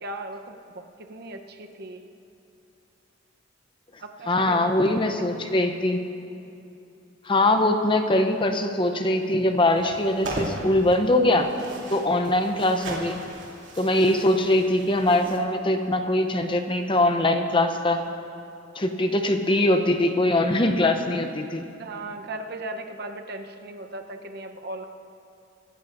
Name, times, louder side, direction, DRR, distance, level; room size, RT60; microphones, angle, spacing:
voice 1, 0.0-2.0 4.0-4.7 5.1-5.2 21.8-24.8, right 2 dB, 55° right, 5 dB, 0.8 m, -37 dB
voice 2, 4.3-6.0 7.3-11.5 11.9-13.2 13.8-18.0 18.8-21.6, left 1 dB, 25° left, 6 dB, 0.7 m, -22 dB
sound 1, 9.7-15.4, right 1 dB, 70° right, 2.6 m, -37 dB
24.5 x 13.0 x 2.6 m, 2.7 s
head